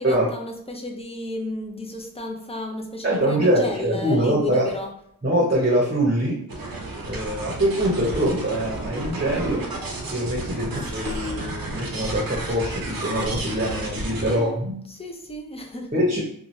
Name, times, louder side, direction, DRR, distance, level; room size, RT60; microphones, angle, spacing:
voice 1, 0.0-5.0 10.6-11.5 14.2-14.6 14.9-16.1, left 2 dB, 15° left, 2 dB, 0.5 m, -33 dB
voice 2, 3.0-4.7 5.2-6.4 7.0-9.6 10.1-14.7 15.9-16.2, right 1 dB, 30° right, -5 dB, 0.8 m, -23 dB
sound 1, 6.5-14.4, right 2 dB, 75° right, 0.6 m, -32 dB
2.7 x 2.2 x 3.1 m, 0.65 s
wide cardioid pair, 45°, 35 cm